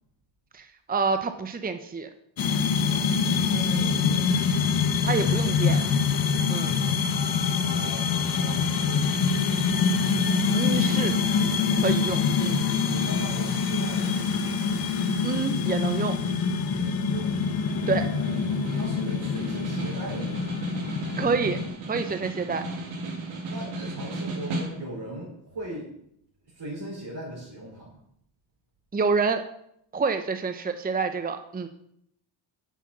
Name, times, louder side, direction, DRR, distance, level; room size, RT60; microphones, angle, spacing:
voice 1, 0.5-2.1 5.0-5.8 6.5-6.7 10.5-11.1 11.8-12.6 15.2-16.2 17.9-18.1 21.2-21.6 21.9-22.6 28.9-29.4 29.9-31.7, right 4 dB, 20° right, 8 dB, 0.8 m, -27 dB
sound 1, 2.4-21.7, left 5 dB, 50° left, 1.1 m, -25 dB
voice 2, 2.9-4.4 6.2-7.1 7.7-9.7 12.9-14.7 16.6-17.3 17.9-18.4 18.7-20.6 23.5-25.9 26.5-28.0, right 1 dB, 55° right, -6 dB, 4.4 m, -40 dB
Snare drum, 17.1-25.1, right 2 dB, 80° right, 2.2 m, -35 dB
7.3 x 5.7 x 7.3 m, 0.72 s
cardioid pair, 75°, 47 cm